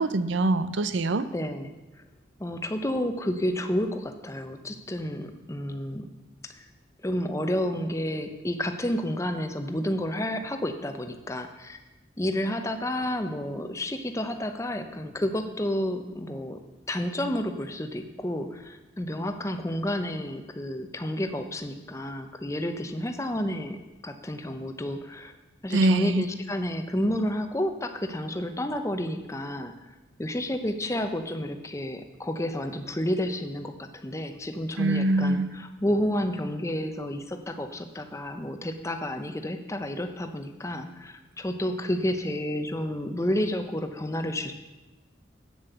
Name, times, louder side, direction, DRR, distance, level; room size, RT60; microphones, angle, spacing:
voice 1, 0.0-1.3 25.7-26.3 34.8-35.5, right 2 dB, 75° right, 13 dB, 0.6 m, -23 dB
voice 2, 1.3-2.0 2.4-6.1 6.4-6.6 7.0-11.8 12.2-16.6 16.9-25.3 25.6-29.7 30.2-44.5, left 1 dB, 15° left, 7 dB, 0.7 m, -30 dB
8.8 x 7.3 x 6.8 m, 1.1 s
head